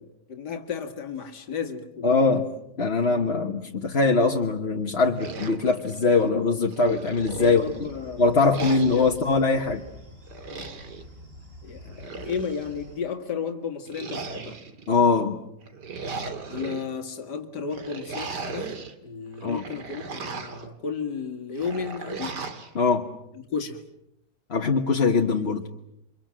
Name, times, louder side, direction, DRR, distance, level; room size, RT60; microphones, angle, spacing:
voice 1, 0.0-2.1 3.1-3.3 7.4-9.3 10.5-10.7 11.6-14.6 16.5-22.4 23.3-23.8, left 5 dB, 80° left, 2.5 m, -33 dB
voice 2, 2.0-2.4 2.8-7.6 8.2-9.8 14.9-15.4 19.4-19.6 22.7-23.1 24.5-25.6, left 4 dB, 40° left, 1.5 m, -22 dB
sound 1, 5.2-6.3 6.7-7.9 8.5-9.2 10.3-11.0 11.8-12.8 13.9-14.9 15.6-16.8 17.7-18.9 19.3-20.7 21.6-22.7, right 4 dB, 85° right, 2.8 m, -37 dB
sound 2, 7.2-13.0, left 2 dB, 35° right, 5.7 m, -47 dB
29.5 x 25.0 x 7.6 m
omnidirectional pair, 1.8 m